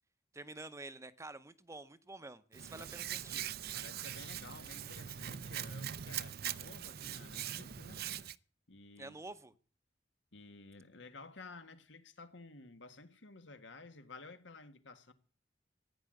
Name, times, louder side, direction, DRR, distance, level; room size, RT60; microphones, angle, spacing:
voice 1, 0.3-3.4 9.0-9.5, right 2 dB, 15° right, 0.8 m, -49 dB
Hands, 2.5-8.4, right 10 dB, 55° right, 0.6 m, -42 dB
voice 2, 3.7-8.0 8.7-9.2 10.3-15.1, left 3 dB, 80° left, 1.7 m, -53 dB
14.5 x 9.5 x 7.7 m
head